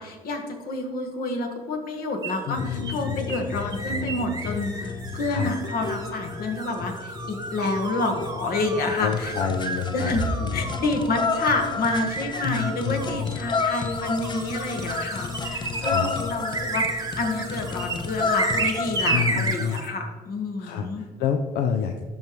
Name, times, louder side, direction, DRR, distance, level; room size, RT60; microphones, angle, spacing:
voice 1, 0.0-9.3 9.9-21.0, left 2 dB, 60° left, 3 dB, 1.5 m, -29 dB
sound 1, 2.2-19.9, right 3 dB, 20° right, 1.1 m, -33 dB
voice 2, 2.5-3.2 5.3-5.5 8.9-10.8 12.4-13.4 15.7-16.1 19.1-19.8 20.6-22.0, left 7 dB, 80° left, 5 dB, 0.6 m, -28 dB
sound 2, 2.6-19.5, left 5 dB, 25° left, 0.5 m, -32 dB
12.0 x 5.3 x 3.1 m, 1.5 s
cardioid pair, 110°, 17 cm